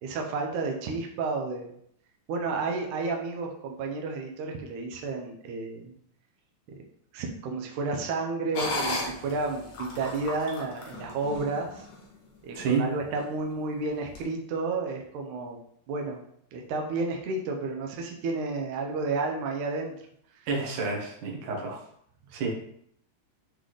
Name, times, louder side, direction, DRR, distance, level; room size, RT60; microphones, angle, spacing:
voice 1, 0.0-1.7 2.3-5.9 7.1-11.9 12.4-15.6 15.9-16.2 16.5-19.9 20.3-20.5, right 3 dB, 85° right, 1 dB, 1.7 m, -31 dB
sound 1, 8.5-12.0 12.5-12.6 13.1-13.5 14.1-14.2, left 2 dB, 60° left, 2.5 m, -35 dB
voice 2, 20.5-21.8 22.3-22.5, right 4 dB, 60° right, -1 dB, 2.4 m, -29 dB
10.0 x 3.9 x 3.2 m, 0.68 s
omnidirectional pair, 4.7 m